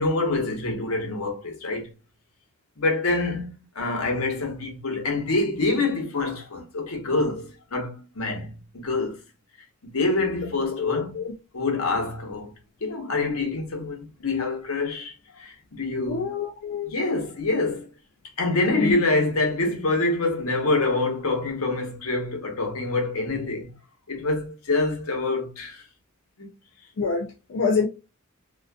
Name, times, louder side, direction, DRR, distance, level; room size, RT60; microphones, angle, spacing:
voice 1, 0.0-1.9 2.8-9.2 9.8-11.1 11.5-12.5 12.8-16.3 16.8-17.9 18.4-23.7 24.1-25.8 26.4-26.5, left 2 dB, 85° left, 1.0 m, -26 dB
voice 2, 10.8-11.3 16.0-16.9 18.8-19.0 27.0-27.9, left 5 dB, 60° left, 0.4 m, -26 dB
2.5 x 2.4 x 2.2 m
head